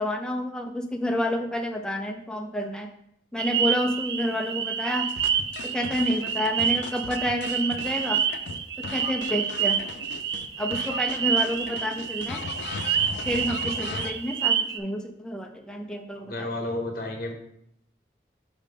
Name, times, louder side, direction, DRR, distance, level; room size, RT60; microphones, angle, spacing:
voice 1, 0.0-2.9 3.3-5.1 5.6-8.2 8.8-9.8 10.6-12.4 13.3-16.5, left 1 dB, 5° left, 3 dB, 0.4 m, -29 dB
sound 1, 3.4-14.8, right 8 dB, 65° right, 0.4 m, -28 dB
sound 2, 5.1-10.5 10.7-14.1, left 5 dB, 85° left, 0.4 m, -38 dB
voice 2, 16.1-17.3, left 2 dB, 55° left, 2 dB, 1.0 m, -31 dB
5.4 x 3.5 x 5.0 m, 0.74 s
head